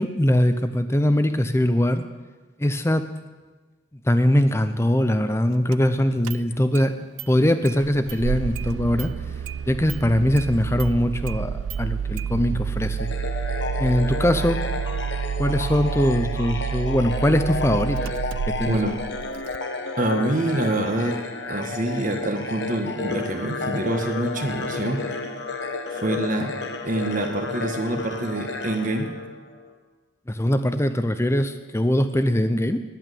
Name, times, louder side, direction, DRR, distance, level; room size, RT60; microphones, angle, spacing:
voice 1, 0.0-2.0 2.6-3.0 4.0-6.9 7.3-9.1 9.7-13.1 13.8-14.6 15.4-18.1 18.5-18.8 30.3-32.8, left 1 dB, 15° left, 9 dB, 0.6 m, -21 dB
Engine starting, 5.7-5.8 6.2-6.9 7.2-7.3 7.7-19.6, right 7 dB, 75° right, 0.3 m, -29 dB
sound 1, 13.0-29.7, left 3 dB, 65° left, 1.1 m, -32 dB
voice 2, 18.6-18.9 20.0-21.2 21.5-25.0 25.9-26.6 26.8-29.1, right 1 dB, 45° right, 4 dB, 1.4 m, -26 dB
10.5 x 9.0 x 9.2 m, 1.3 s
head